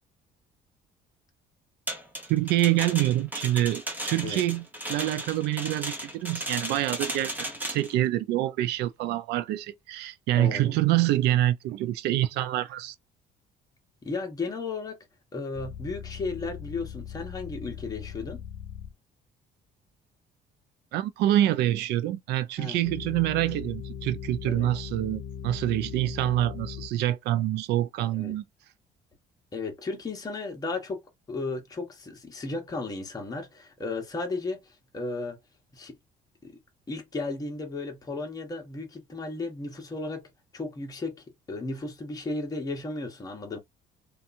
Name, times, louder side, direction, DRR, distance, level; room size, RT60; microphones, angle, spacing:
sound 1, 1.9-7.9, equal, 10° right, 0.8 m, -35 dB
voice 1, 2.3-12.9 20.9-28.4, right 14 dB, 80° right, 0.4 m, -26 dB
voice 2, 10.4-10.7 14.0-15.0 15.3-18.4 22.6-22.9 24.4-24.7 26.0-26.1 28.1-28.3 29.5-31.0 31.3-35.4 35.7-36.0 36.4-36.5 36.9-43.6, left 3 dB, 20° left, 0.9 m, -34 dB
sound 2, 15.5-18.9 22.8-26.9, left 8 dB, 50° left, 0.5 m, -39 dB
2.7 x 2.4 x 2.5 m
cardioid pair, 110°, 17 cm